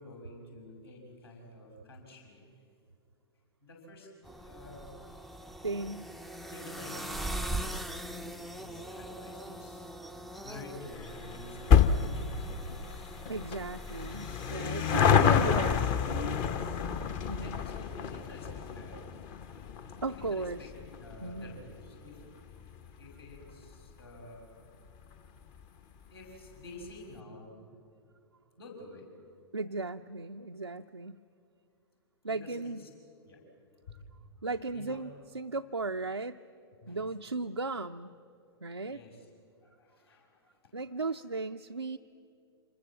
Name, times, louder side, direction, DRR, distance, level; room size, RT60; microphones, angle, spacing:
voice 1, 0.0-2.4 3.6-4.1 4.4-5.0 6.5-9.9 10.4-13.6 16.3-16.8 17.4-19.1 20.1-20.7 21.0-22.3 23.0-24.5 26.1-27.6 28.6-29.1 32.3-32.9 33.2-33.4 33.9-34.0 34.7-35.1 36.8-37.1 38.8-39.3 39.6-40.6 41.1-41.2, left 2 dB, 65° left, 0 dB, 6.5 m, -49 dB
sound 1, 4.2-14.5, right 1 dB, ahead, 0.5 m, -41 dB
voice 2, 5.6-6.1 13.3-15.9 17.3-17.6 20.0-20.6 21.2-21.6 29.5-31.2 32.2-32.8 34.4-36.4 36.9-38.1 38.6-39.0 40.7-42.0, right 3 dB, 85° right, 5 dB, 0.5 m, -36 dB
sound 2, 10.9-23.7 24.0-24.1 25.0-25.1 25.3-25.4 25.6-25.7, left 7 dB, 30° left, 0.9 m, -29 dB
27.0 x 21.0 x 7.6 m, 2.5 s
figure-of-eight pair, 105°, 14 cm